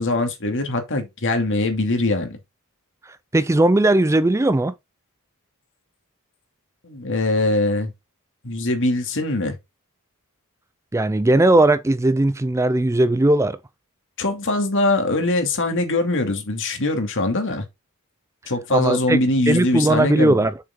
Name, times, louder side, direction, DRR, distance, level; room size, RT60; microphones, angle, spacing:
voice 1, 0.0-2.4 6.8-7.9 8.4-9.6 14.2-17.6 18.5-20.4, left 2 dB, 60° left, 2.5 m, -22 dB
voice 2, 3.3-4.7 10.9-13.6 18.7-19.2 19.5-20.6, right 2 dB, 15° right, 0.4 m, -18 dB
6.9 x 6.6 x 3.8 m
head